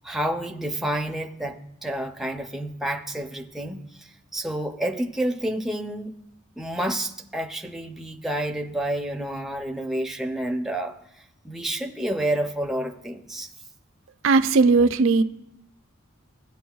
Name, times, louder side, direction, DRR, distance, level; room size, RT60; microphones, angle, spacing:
voice 1, 0.0-6.1 6.6-11.0 11.4-13.5, right 1 dB, ahead, 3 dB, 0.5 m, -29 dB
voice 2, 14.2-15.2, right 4 dB, 70° right, 10 dB, 0.4 m, -18 dB
15.5 x 9.3 x 2.3 m, 0.80 s
head